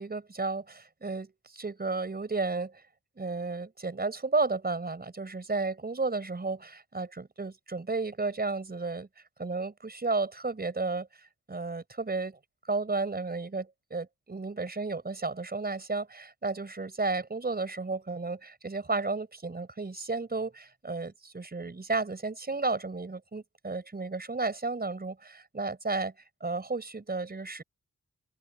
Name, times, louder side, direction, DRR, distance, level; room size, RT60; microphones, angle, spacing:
voice 1, 0.0-2.8 3.2-9.1 9.4-12.4 12.7-26.1 26.4-27.6, right 3 dB, 30° right, 4.8 m, -33 dB
open air
wide cardioid pair, 165°, 33 cm